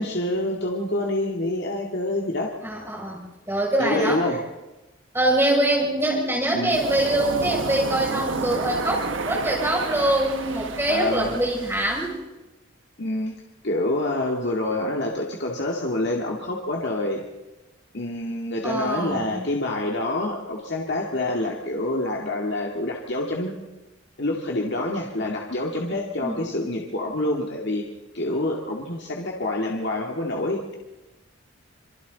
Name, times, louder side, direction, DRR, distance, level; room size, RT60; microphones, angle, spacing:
voice 1, 0.0-2.5 3.8-4.4 6.5-6.8 10.9-11.4 13.0-13.3 13.6-17.2 17.9-23.5 24.2-27.9 28.1-30.8, left 1 dB, 60° left, -1 dB, 2.2 m, -27 dB
voice 2, 2.6-3.2 3.5-4.2 5.1-12.1 18.6-19.4 26.2-26.4, right 1 dB, 10° right, -3 dB, 6.8 m, -24 dB
Waves surf, 6.7-12.1, right 3 dB, 75° right, 1.3 m, -31 dB
27.0 x 23.5 x 4.1 m, 1.1 s
head